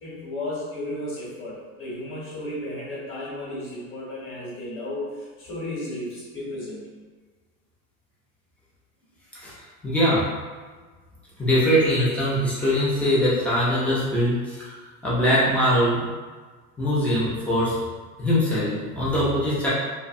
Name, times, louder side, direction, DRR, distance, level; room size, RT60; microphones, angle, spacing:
voice 1, 0.0-6.8, left 1 dB, 25° left, -7 dB, 1.0 m, -34 dB
voice 2, 9.8-10.2 11.4-16.1 16.8-17.7 18.2-19.7, equal, 5° left, -9 dB, 0.3 m, -22 dB
2.5 x 2.1 x 2.4 m, 1.4 s
supercardioid pair, 115°, 46 cm